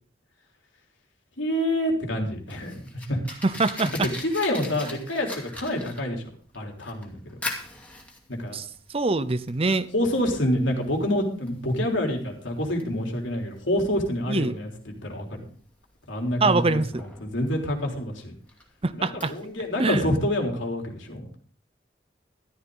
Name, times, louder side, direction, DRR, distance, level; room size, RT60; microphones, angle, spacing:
voice 1, 1.4-3.2 4.1-6.2 6.5-7.4 8.3-8.6 9.9-15.4 16.1-18.3 18.9-21.3, left 1 dB, 85° left, 1 dB, 3.6 m, -27 dB
Fire, 2.1-19.8, left 1 dB, 10° left, 2.4 m, -42 dB
voice 2, 3.4-4.1 8.5-8.6 8.9-9.9 14.3-14.6 16.4-17.0 18.8-19.3 19.8-20.1, right 3 dB, 30° right, 14 dB, 0.7 m, -24 dB
13.5 x 13.0 x 3.9 m, 0.43 s
head